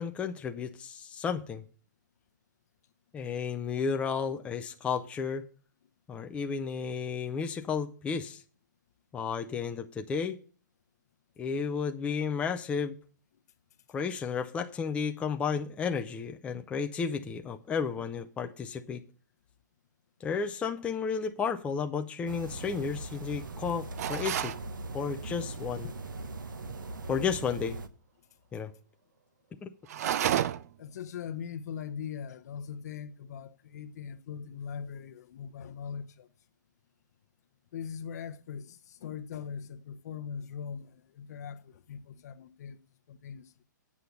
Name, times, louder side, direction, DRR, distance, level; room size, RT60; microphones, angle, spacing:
voice 1, 0.0-1.6 3.1-5.4 6.1-8.4 9.1-10.4 11.4-13.0 13.9-19.0 20.2-24.6 24.9-25.9 27.1-27.8 28.5-28.7 29.6-29.7, left 6 dB, 10° left, 0.5 m, -32 dB
sound 1, 22.3-27.9, right 2 dB, 90° right, 1.1 m, -40 dB
sound 2, 24.0-24.6 29.9-30.8, right 11 dB, 50° right, 0.5 m, -30 dB
voice 2, 30.8-36.3 37.7-42.8 43.1-43.5, left 7 dB, 55° left, 0.8 m, -41 dB
8.5 x 5.6 x 7.9 m
hypercardioid pair, 145°, 10 cm